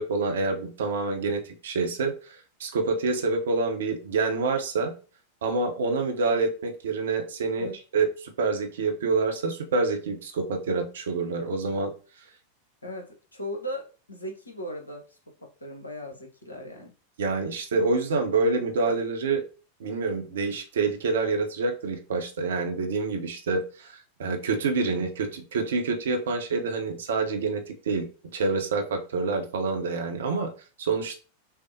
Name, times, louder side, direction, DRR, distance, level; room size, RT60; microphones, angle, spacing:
voice 1, 0.0-4.9 5.4-11.9 17.2-19.4 19.8-30.5 30.8-31.2, right 4 dB, 60° right, 5 dB, 0.7 m, -27 dB
voice 2, 12.8-16.9, equal, 80° left, 2 dB, 0.9 m, -38 dB
5.7 x 2.0 x 2.7 m, 0.35 s
figure-of-eight pair, 90°, 0 cm